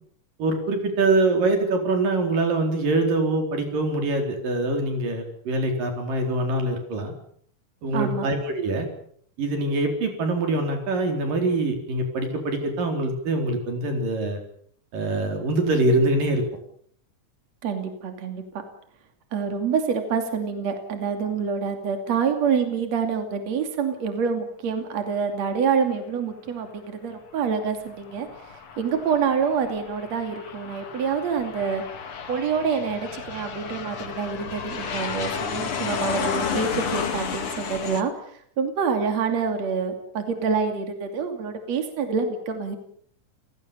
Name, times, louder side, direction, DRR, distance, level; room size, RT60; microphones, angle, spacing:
voice 1, 0.4-7.1 7.8-8.9 9.4-14.4 14.9-16.4, right 2 dB, 90° right, 4 dB, 5.9 m, -24 dB
voice 2, 7.9-8.3 17.6-18.4 19.3-31.8 32.3-42.8, right 6 dB, 55° right, 6 dB, 3.7 m, -27 dB
Aircraft, 27.8-38.0, left 6 dB, 45° left, 2.7 m, -32 dB
29.5 x 17.5 x 7.0 m, 0.62 s
omnidirectional pair, 3.8 m